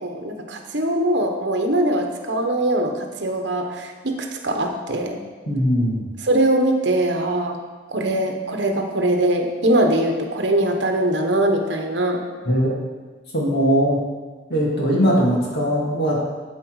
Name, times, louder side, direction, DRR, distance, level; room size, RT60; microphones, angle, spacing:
voice 1, 0.0-5.2 6.3-7.6 7.9-12.2, right 1 dB, 70° right, 4 dB, 1.0 m, -22 dB
voice 2, 5.5-6.0 12.4-12.7 13.3-14.0 14.5-16.2, equal, 55° left, -4 dB, 2.2 m, -20 dB
12.0 x 4.3 x 4.7 m, 1.4 s
head